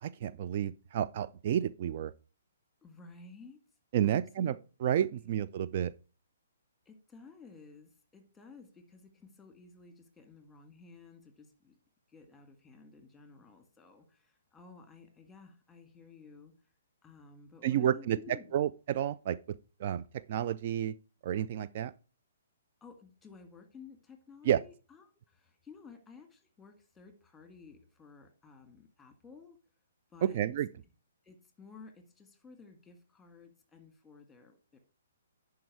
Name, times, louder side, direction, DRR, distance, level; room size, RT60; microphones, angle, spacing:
voice 1, 0.0-2.1 3.9-4.6 4.8-5.9 17.6-19.4 19.8-21.0 21.2-21.9 24.5-24.6 30.2-30.7, right 10 dB, 45° right, 0.3 m, -30 dB
voice 2, 2.8-3.6 4.0-4.6 5.1-5.3 6.9-11.8 12.1-16.7 17.0-18.6 22.8-29.6 30.1-30.5 31.2-34.8, left 5 dB, 10° left, 1.8 m, -54 dB
11.0 x 4.7 x 4.7 m
figure-of-eight pair, 130°, 0 cm